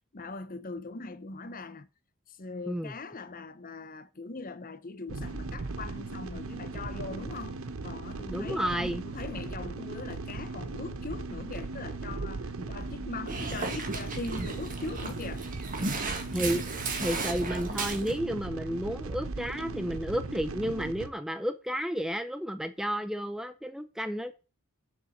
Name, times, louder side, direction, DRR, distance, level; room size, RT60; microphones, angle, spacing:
voice 1, 0.1-1.9 2.3-15.5, left 3 dB, 40° left, 0.8 m, -41 dB
sound 1, 5.1-21.1, right 3 dB, 65° right, 0.9 m, -38 dB
voice 2, 8.3-9.0 12.6-12.7 16.3-16.6 17.0-24.3, equal, ahead, 0.5 m, -32 dB
Dog, 13.3-18.2, right 3 dB, 40° right, 1.9 m, -35 dB
7.4 x 6.8 x 6.5 m
head